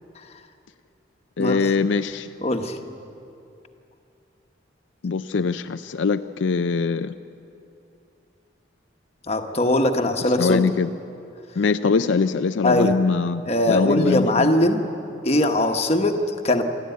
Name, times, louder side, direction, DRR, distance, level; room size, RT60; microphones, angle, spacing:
voice 1, 1.4-2.3 5.0-7.1 10.4-10.9 11.6-14.5, left 4 dB, 75° left, 9 dB, 0.5 m, -22 dB
voice 2, 2.4-2.8 9.3-10.6 12.6-12.9 13.5-14.9 15.2-16.6, left 1 dB, 35° left, 5 dB, 1.2 m, -20 dB
24.0 x 14.0 x 9.3 m, 2.7 s
head